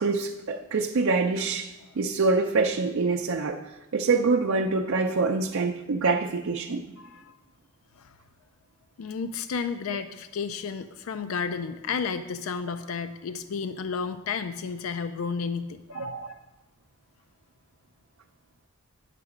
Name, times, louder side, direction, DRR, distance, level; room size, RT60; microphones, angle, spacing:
voice 1, 0.0-3.6 3.9-6.8 16.0-16.3, right 3 dB, 70° right, 1 dB, 0.5 m, -25 dB
voice 2, 7.0-7.4 8.0-8.2 9.0-16.3, left 5 dB, 90° left, 10 dB, 0.4 m, -32 dB
9.6 x 6.7 x 5.0 m, 1.0 s
head